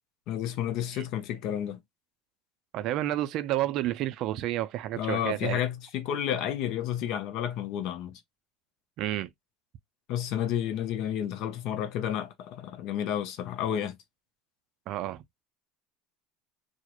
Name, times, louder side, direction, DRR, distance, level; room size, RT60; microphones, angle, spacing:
voice 1, 0.3-1.8 5.0-8.2 10.1-14.0, left 10 dB, 60° left, 0.5 m, -31 dB
voice 2, 2.7-5.6 9.0-9.3 14.9-15.2, right 14 dB, 60° right, 0.3 m, -30 dB
2.3 x 2.0 x 2.9 m
hypercardioid pair, 85°, 0 cm